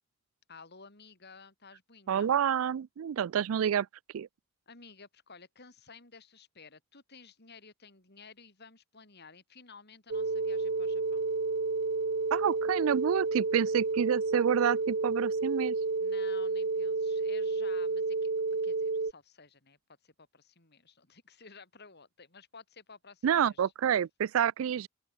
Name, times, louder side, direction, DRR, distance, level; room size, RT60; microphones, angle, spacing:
voice 1, 0.5-2.3 4.7-11.3 16.0-18.3 18.6-23.7, left 5 dB, 50° left, 4.7 m, -54 dB
voice 2, 2.1-3.9 4.1-4.3 12.3-15.8 23.2-24.9, right 8 dB, 75° right, 0.3 m, -28 dB
sound 1, 10.1-19.1, right 3 dB, 55° right, 0.9 m, -30 dB
open air
head